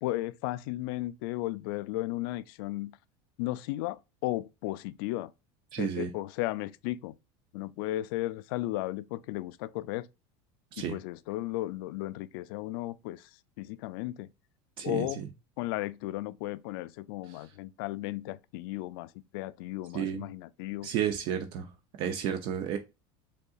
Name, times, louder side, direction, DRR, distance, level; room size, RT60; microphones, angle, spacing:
voice 1, 0.0-2.9 3.4-5.3 5.8-7.1 7.5-10.1 10.8-13.3 13.6-14.3 14.8-15.2 15.6-20.9, left 17 dB, 60° left, 0.4 m, -35 dB
voice 2, 5.7-6.1 10.7-11.0 14.8-15.3 17.3-17.4 19.9-20.3 20.8-21.7 22.0-22.8, right 9 dB, 40° right, 0.6 m, -32 dB
5.3 x 3.7 x 2.4 m
cardioid pair, 175°, 14 cm